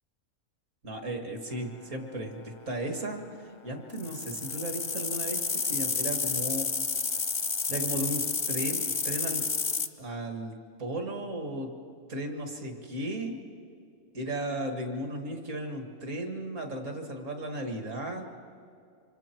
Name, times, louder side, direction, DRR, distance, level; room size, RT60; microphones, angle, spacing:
voice 1, 0.8-3.2 3.6-6.7 7.7-9.4 10.0-10.5 10.8-11.7 12.1-13.4 14.1-18.3, right 1 dB, 65° right, 4 dB, 2.3 m, -35 dB
sound 1, 3.9-9.9, left 4 dB, 35° left, 0.5 m, -30 dB
25.5 x 24.5 x 4.5 m, 2.4 s
omnidirectional pair, 1.4 m